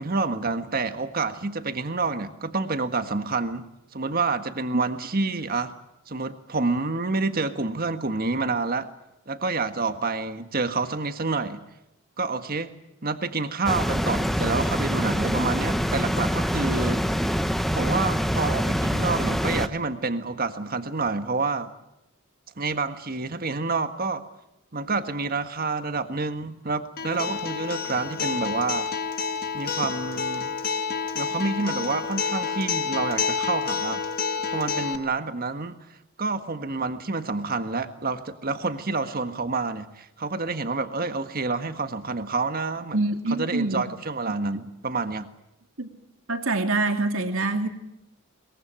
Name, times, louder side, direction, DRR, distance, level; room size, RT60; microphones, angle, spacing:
voice 1, 0.0-3.7 3.9-5.7 6.1-8.9 9.3-11.6 12.2-12.7 13.0-17.0 17.7-21.7 22.6-24.2 24.7-28.9 29.5-30.5 31.1-34.0 34.5-35.8 36.2-43.0 43.4-45.3, right 3 dB, 45° right, 9 dB, 1.6 m, -28 dB
sound 1, 13.6-19.7, equal, ahead, 0.9 m, -25 dB
Acoustic guitar, 27.0-35.0, left 6 dB, 45° left, 1.5 m, -29 dB
voice 2, 42.9-43.9 44.3-44.4 45.8-45.9 46.3-47.7, right 2 dB, 65° right, 6 dB, 2.7 m, -25 dB
23.0 x 21.5 x 8.9 m, 0.85 s
head